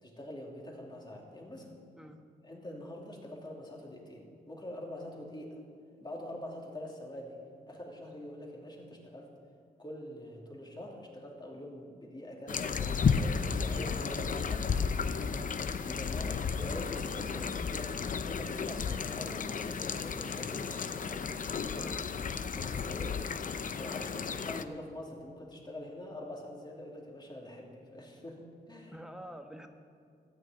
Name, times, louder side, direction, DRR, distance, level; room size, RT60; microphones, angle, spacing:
voice 1, 0.0-1.8 2.4-5.6 6.0-7.4 7.7-9.3 9.8-14.6 15.3-15.5 15.8-21.2 21.6-21.9 22.5-23.2 23.7-24.2 24.4-29.0, left 1 dB, 25° left, -1 dB, 2.6 m, -45 dB
sound 1, 12.5-24.6, left 5 dB, 45° left, 0.6 m, -33 dB
voice 2, 14.7-15.4 21.8-22.1 23.9-24.6 28.9-29.7, equal, 5° right, 5 dB, 1.1 m, -49 dB
13.5 x 6.4 x 9.0 m, 2.2 s
cardioid pair, 85°, 18 cm